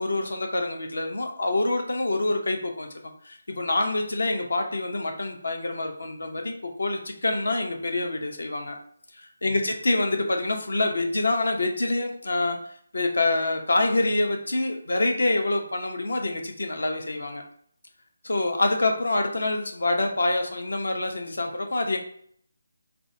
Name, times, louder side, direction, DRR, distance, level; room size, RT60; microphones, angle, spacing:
voice 1, 0.0-2.9 3.2-8.7 9.2-12.6 12.9-17.4 18.2-22.0, left 2 dB, 65° left, 4 dB, 0.9 m, -26 dB
3.9 x 2.9 x 4.6 m, 0.63 s
figure-of-eight pair, 155°, 0 cm